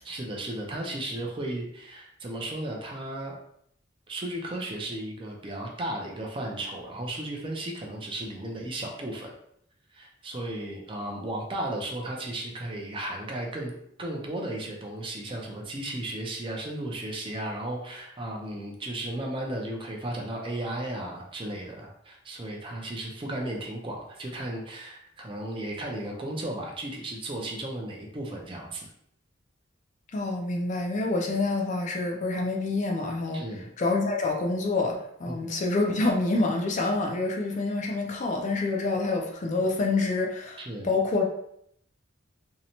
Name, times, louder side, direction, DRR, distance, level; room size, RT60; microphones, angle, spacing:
voice 1, 0.0-3.4 4.1-9.3 9.9-13.7 14.0-28.9 33.3-33.7 35.3-35.5 40.6-40.9, right 1 dB, 25° right, 0 dB, 0.4 m, -35 dB
voice 2, 30.1-33.4 33.8-41.2, left 3 dB, 40° left, 1 dB, 0.4 m, -27 dB
2.6 x 2.1 x 2.8 m, 0.72 s
head